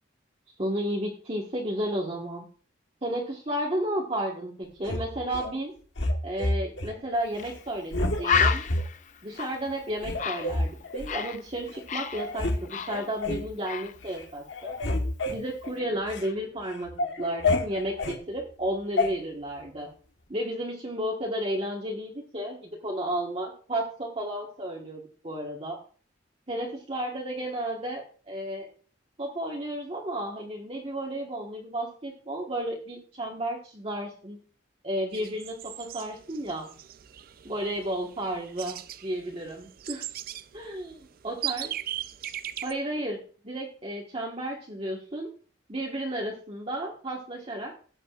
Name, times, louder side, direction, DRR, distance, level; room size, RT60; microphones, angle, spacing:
voice 1, 0.6-2.5 3.0-5.7 6.2-8.6 9.2-14.7 15.2-16.9 17.2-19.9 20.3-25.8 26.5-28.7 29.2-34.4 34.8-36.7 37.4-40.0 40.5-41.0 41.2-41.7 42.6-43.2 43.4-45.3 45.7-47.7, right 1 dB, 30° right, -3 dB, 1.4 m, -32 dB
sound 1, 4.8-5.5 6.0-6.9 7.3-7.6 7.9-8.8 9.4-9.5 10.0-11.1 11.7-11.8 12.1-12.6 12.9-13.5 13.9-14.2 14.5-16.3 16.7-18.2 19.0-19.1, left 2 dB, 70° left, 1.3 m, -29 dB
Bird, 7.4-7.5 7.8-7.9 8.2-11.4 11.7-13.4 13.6-13.9, left 7 dB, 40° left, 0.5 m, -30 dB
sound 2, 35.1-42.7, right 12 dB, 50° right, 0.4 m, -39 dB
17.0 x 7.9 x 2.4 m, 0.41 s
head